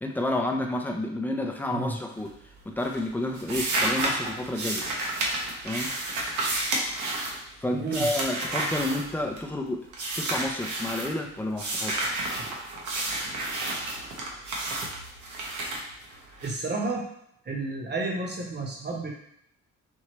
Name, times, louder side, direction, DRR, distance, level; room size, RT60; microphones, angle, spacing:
voice 1, 0.0-2.3 2.7-4.9 5.6-5.9 7.6-9.9 10.2-12.0, left 1 dB, 5° left, 2 dB, 0.6 m, -30 dB
sound 1, 2.1-2.6 2.8-9.6 9.9-11.1 11.6-16.5, right 2 dB, 80° right, 1.0 m, -31 dB
voice 2, 7.8-8.1 15.6-15.7 16.4-17.0 17.4-19.1, right 3 dB, 35° right, -1 dB, 1.1 m, -31 dB
4.6 x 2.7 x 3.0 m, 0.74 s
cardioid pair, 90°, 30 cm